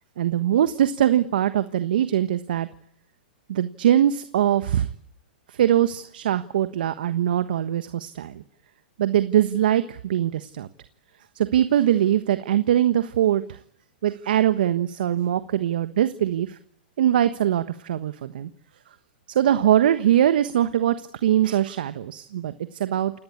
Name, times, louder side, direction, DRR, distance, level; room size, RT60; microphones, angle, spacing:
voice 1, 0.2-2.7 3.5-4.9 5.5-8.4 9.0-10.7 11.3-13.6 14.0-16.6 17.0-18.5 19.3-20.9 21.2-23.1, right 11 dB, 70° right, 11 dB, 1.3 m, -22 dB
29.0 x 18.0 x 8.6 m, 0.69 s
hypercardioid pair, 120°, 5 cm